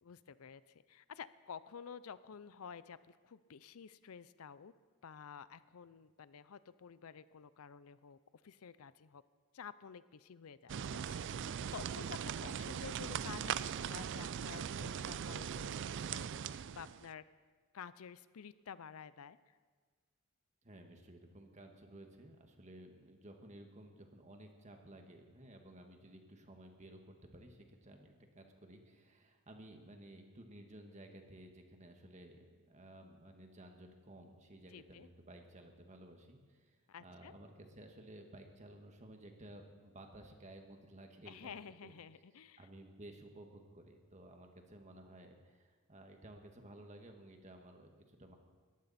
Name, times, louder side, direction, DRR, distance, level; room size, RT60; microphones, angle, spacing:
voice 1, 0.0-4.7 5.0-8.2 8.4-9.2 9.5-11.4 11.7-17.2 17.7-19.5 34.7-35.1 36.9-37.3 41.3-42.7, left 7 dB, 70° left, 16 dB, 0.5 m, -51 dB
sound 1, 10.7-17.1, right 8 dB, 55° right, 0.4 m, -40 dB
voice 2, 20.6-41.9 42.6-48.4, right 1 dB, 30° right, 4 dB, 1.7 m, -55 dB
21.0 x 14.5 x 4.2 m, 1.5 s
head